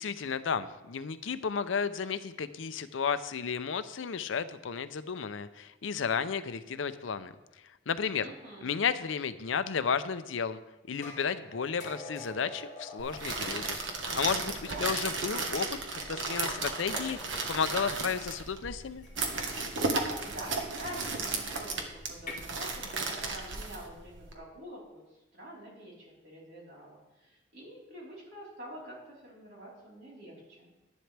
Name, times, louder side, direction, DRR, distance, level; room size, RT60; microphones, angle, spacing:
voice 1, 0.0-7.3 7.9-8.3 8.6-10.6 10.9-13.8 14.2-14.5 14.8-19.1, left 6 dB, 85° left, 12 dB, 0.6 m, -33 dB
voice 2, 8.2-8.7 14.7-14.9 19.9-30.7, right 1 dB, 55° right, -6 dB, 4.1 m, -47 dB
sound 1, 11.0-14.5 15.4-15.5 16.9-17.7 19.0-19.3 22.1-22.3, left 2 dB, 40° left, 1.8 m, -46 dB
sound 2, 13.0-24.3, right 3 dB, 75° right, 1.3 m, -34 dB
11.0 x 11.0 x 3.4 m, 1.0 s
head